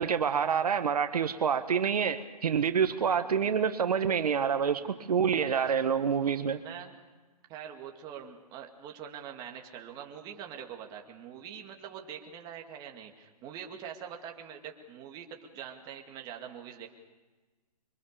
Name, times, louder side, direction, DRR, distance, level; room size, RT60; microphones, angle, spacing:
voice 1, 0.0-6.6, right 7 dB, 70° right, 1.6 m, -27 dB
voice 2, 3.2-3.7 4.8-5.3 6.6-6.9 7.5-16.9, right 8 dB, 20° right, 2.2 m, -44 dB
24.5 x 24.5 x 6.9 m
hypercardioid pair, 155°, 20 cm